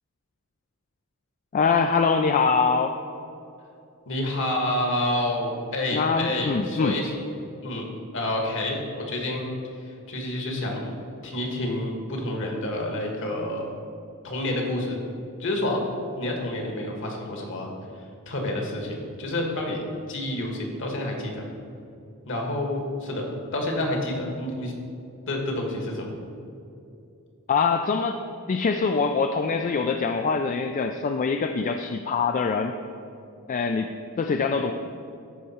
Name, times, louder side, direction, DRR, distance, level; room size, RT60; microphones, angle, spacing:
voice 1, 1.5-3.0 5.9-7.0 27.5-28.2 28.5-32.8 33.5-34.7, left 5 dB, 35° left, 5 dB, 0.3 m, -24 dB
voice 2, 4.1-7.1 7.6-7.9 8.1-9.5 9.8-10.9 11.2-13.8 14.2-15.0 15.4-15.8 16.2-17.7 18.3-19.8 20.1-21.5 22.3-23.2 23.5-24.7 25.3-26.1, left 1 dB, 60° left, 1 dB, 1.5 m, -28 dB
13.0 x 4.8 x 4.3 m, 2.6 s
head